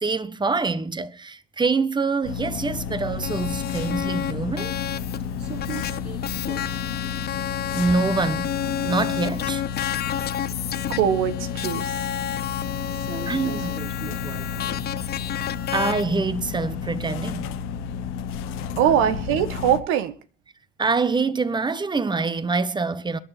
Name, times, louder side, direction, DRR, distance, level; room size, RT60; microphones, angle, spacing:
voice 1, 0.0-4.7 7.7-9.6 13.3-13.7 15.7-17.5 20.8-23.2, right 4 dB, 20° right, 1.3 m, -25 dB
sound 1, 2.2-19.8, left 7 dB, 70° left, 1.6 m, -32 dB
sound 2, 3.2-16.0, left 10 dB, 50° left, 1.0 m, -31 dB
voice 2, 5.4-6.8 12.9-14.8 18.7-19.0, right 6 dB, 50° right, 5.1 m, -40 dB
voice 3, 10.8-12.1 18.8-20.1, right 10 dB, 75° right, 1.6 m, -22 dB
21.5 x 11.0 x 4.4 m
supercardioid pair, 85°, 21 cm